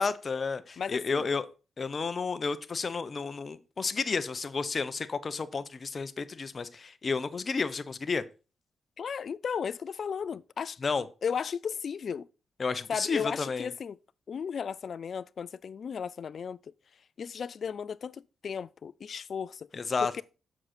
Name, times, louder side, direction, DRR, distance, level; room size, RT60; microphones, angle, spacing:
voice 1, 0.0-1.5 1.8-8.2 10.8-11.0 12.6-13.7 19.7-20.1, left 4 dB, 45° left, 0.8 m, -31 dB
voice 2, 0.8-1.3 9.0-10.8 11.2-12.3 12.9-14.0 14.3-16.6 17.2-19.7 20.0-20.2, left 7 dB, 60° left, 0.4 m, -35 dB
7.6 x 6.4 x 4.3 m
supercardioid pair, 55°, 0 cm